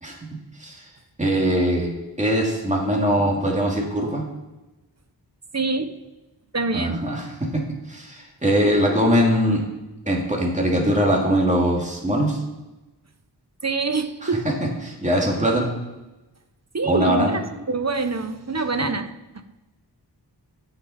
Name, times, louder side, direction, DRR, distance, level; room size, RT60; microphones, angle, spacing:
voice 1, 1.2-1.9 2.2-4.3 6.7-7.6 7.9-9.6 10.1-12.4 14.2-14.5 14.8-15.7 16.8-17.4, equal, 15° right, -1 dB, 2.3 m, -21 dB
voice 2, 5.5-5.9 6.5-7.0 13.6-14.5 16.7-17.4 17.7-19.1, right 3 dB, 35° right, 8 dB, 0.8 m, -25 dB
15.5 x 5.8 x 4.2 m, 1.1 s
wide cardioid pair, 45°, 43 cm